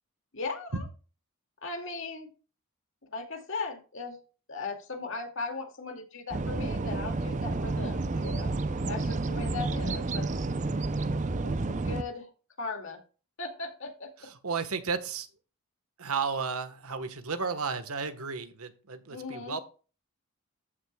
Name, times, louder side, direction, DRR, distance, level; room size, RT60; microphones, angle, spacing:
voice 1, 0.3-0.8 1.6-2.3 3.1-4.2 4.5-8.5 8.9-10.3 11.4-12.3 12.6-13.0 13.4-14.1 19.1-19.6, left 3 dB, 60° left, 4 dB, 2.2 m, -38 dB
sound 1, 6.3-12.0, right 3 dB, 35° right, 0.5 m, -30 dB
voice 2, 14.4-15.3 16.0-19.6, right 5 dB, 80° right, 10 dB, 1.3 m, -33 dB
14.5 x 6.3 x 2.3 m, 0.35 s
head